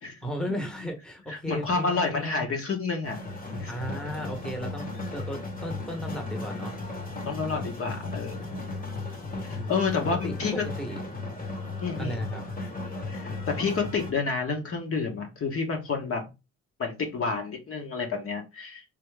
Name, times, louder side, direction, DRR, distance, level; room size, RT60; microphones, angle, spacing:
voice 1, 0.2-2.4 3.7-6.8 9.6-9.9 10.2-10.4 10.8-11.0 12.0-12.4, equal, ahead, 1.0 m, -35 dB
voice 2, 1.3-3.2 3.6-3.7 7.2-8.5 9.4-10.7 11.8-12.2 13.1-16.3 16.8-18.8, left 4 dB, 50° left, 1.1 m, -29 dB
sound 1, 3.0-14.1, left 3 dB, 30° left, 1.1 m, -35 dB
3.4 x 2.9 x 3.4 m
cardioid pair, 90°, 30 cm